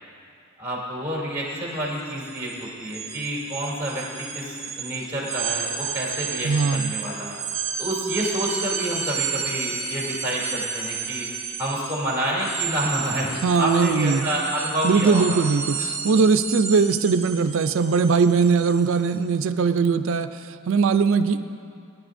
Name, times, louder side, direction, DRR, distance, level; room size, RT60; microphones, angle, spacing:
voice 1, 0.6-7.4 7.8-11.3 11.6-15.4, right 1 dB, 10° right, -4 dB, 2.8 m, -28 dB
sound 1, 1.4-1.6 1.9-19.1, right 6 dB, 30° right, 1.2 m, -32 dB
voice 2, 6.4-6.9 13.4-14.3 14.8-21.4, right 5 dB, 60° right, 10 dB, 0.4 m, -20 dB
20.5 x 10.5 x 2.6 m, 2.4 s
head